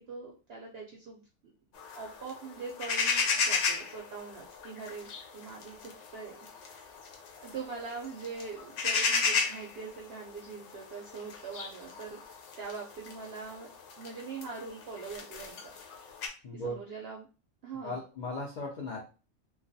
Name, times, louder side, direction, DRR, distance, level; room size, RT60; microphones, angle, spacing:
voice 1, 0.1-1.2 1.9-6.9 7.4-12.2 12.6-13.7 14.0-15.7 16.5-17.3 17.6-18.0, right 4 dB, 65° right, -1 dB, 0.6 m, -42 dB
sound 1, 1.7-16.3, left 5 dB, 70° left, 0.8 m, -35 dB
voice 2, 16.4-16.8 17.8-19.0, left 1 dB, 85° left, -2 dB, 0.4 m, -37 dB
2.3 x 2.2 x 2.5 m, 0.34 s
omnidirectional pair, 1.4 m